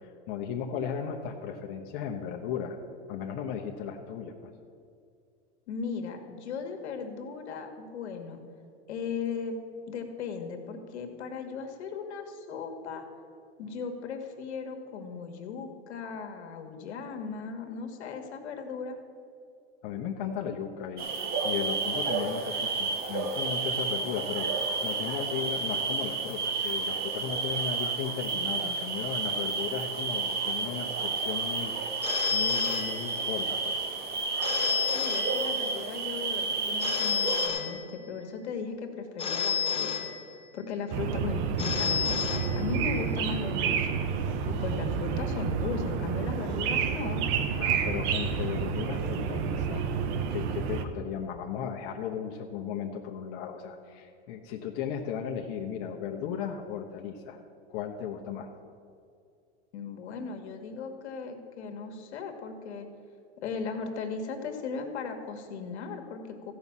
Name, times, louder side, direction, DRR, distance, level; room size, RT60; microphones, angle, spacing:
voice 1, 0.0-2.8 3.1-4.5 19.8-33.9 47.6-49.9 50.3-57.4 57.7-58.5, left 8 dB, 45° left, 1 dB, 1.0 m, -36 dB
voice 2, 5.7-8.4 8.9-9.6 9.9-13.1 13.6-19.0 34.9-40.1 40.5-44.0 44.4-47.2 59.7-62.9 63.4-66.5, left 5 dB, 75° left, 5 dB, 1.7 m, -37 dB
sound 1, 21.0-37.5, right 4 dB, 30° right, 1.2 m, -31 dB
Telephone, 32.0-33.5 34.4-35.9 36.8-38.3 39.2-40.7 41.6-43.1, left 7 dB, 15° left, 1.3 m, -31 dB
sound 2, 40.9-50.8, right 6 dB, 45° right, 0.9 m, -30 dB
14.5 x 5.5 x 7.3 m, 2.4 s
supercardioid pair, 135°, 34 cm